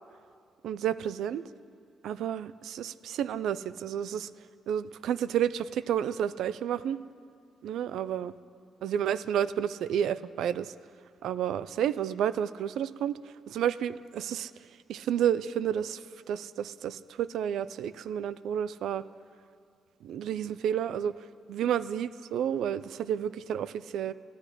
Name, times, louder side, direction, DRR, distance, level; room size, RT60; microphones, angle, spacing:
voice 1, 0.6-1.5 2.0-4.3 4.7-7.0 7.6-8.3 8.8-10.7 11.2-14.5 14.9-19.1 20.0-24.1, right 9 dB, 85° right, 16 dB, 0.4 m, -31 dB
14.0 x 10.0 x 9.9 m, 2.3 s
cardioid pair, 90°, 0 cm